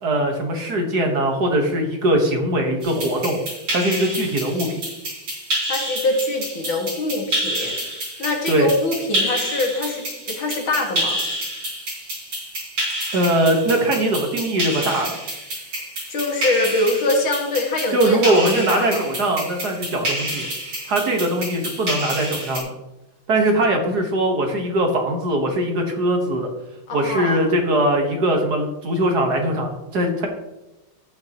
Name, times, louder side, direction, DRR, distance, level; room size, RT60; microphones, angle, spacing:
voice 1, 0.0-3.4 3.7-4.7 8.5-8.7 13.1-15.2 17.9-20.5 20.9-22.7 23.3-26.5 26.9-30.3, right 1 dB, 55° right, 3 dB, 1.6 m, -21 dB
sound 1, 2.8-22.6, right 1 dB, 75° right, 4.8 m, -28 dB
voice 2, 5.7-7.8 8.2-11.2 16.1-19.0 26.9-27.4, left 2 dB, 65° left, 1 dB, 2.4 m, -24 dB
12.0 x 8.7 x 2.9 m, 0.98 s
omnidirectional pair, 2.4 m